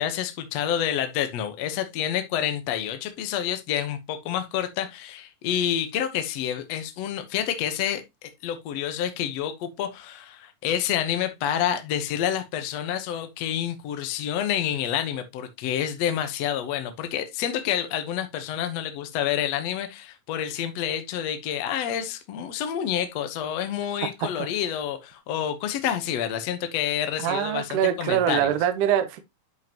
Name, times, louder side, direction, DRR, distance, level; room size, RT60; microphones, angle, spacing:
voice 1, 0.0-28.5, left 10 dB, 65° left, 1.9 m, -28 dB
voice 2, 27.2-29.2, right 10 dB, 75° right, 2.4 m, -24 dB
10.5 x 5.6 x 2.9 m
omnidirectional pair, 3.8 m